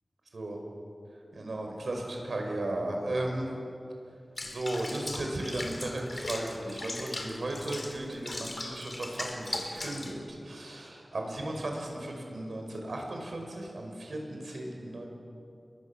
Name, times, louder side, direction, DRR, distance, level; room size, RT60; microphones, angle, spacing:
voice 1, 1.3-3.5 4.4-15.1, right 1 dB, 85° right, 1 dB, 6.0 m, -35 dB
Water / Bathtub (filling or washing), 4.4-10.2, left 2 dB, 40° left, 3.1 m, -39 dB
29.5 x 23.0 x 7.4 m, 2.6 s
wide cardioid pair, 80°, 0 cm